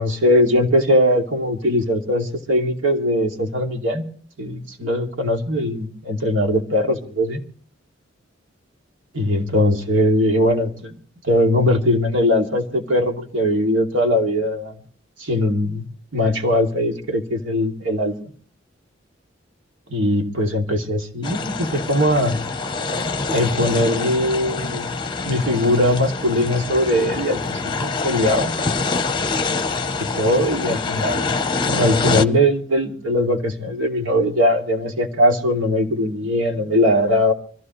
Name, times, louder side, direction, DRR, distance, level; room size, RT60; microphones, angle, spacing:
voice 1, 0.0-4.0 4.4-7.4 9.1-10.9 11.2-14.7 15.2-18.1 19.9-22.4 23.3-24.9 25.2-28.5 30.1-37.3, left 1 dB, 85° right, 3 dB, 2.6 m, -20 dB
sound 1, 21.2-32.2, left 4 dB, 25° left, 0.8 m, -25 dB
24.5 x 15.5 x 3.1 m, 0.43 s
head